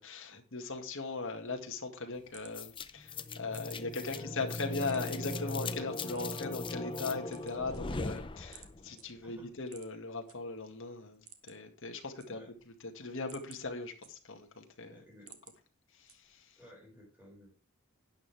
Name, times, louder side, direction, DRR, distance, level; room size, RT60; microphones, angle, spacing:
voice 1, 0.0-12.4 12.8-15.0 15.9-16.6, left 3 dB, 65° left, 4 dB, 2.0 m, -39 dB
sound 1, 2.2-4.1 4.5-5.4 6.1-6.7 7.2-8.2 8.5-8.7 9.0-9.1 9.6-10.4 10.7-10.8 11.1-11.7 12.0-12.7 13.1-14.5 14.9-15.6 16.1-16.5, right 9 dB, 80° right, 1.8 m, -55 dB
sound 2, 2.5-8.9, left 3 dB, 25° left, 0.6 m, -39 dB
voice 2, 9.2-9.5 12.3-12.5 14.9-15.3 16.6-17.6, equal, 10° right, -4 dB, 6.0 m, -55 dB
11.5 x 9.5 x 3.4 m, 0.33 s
head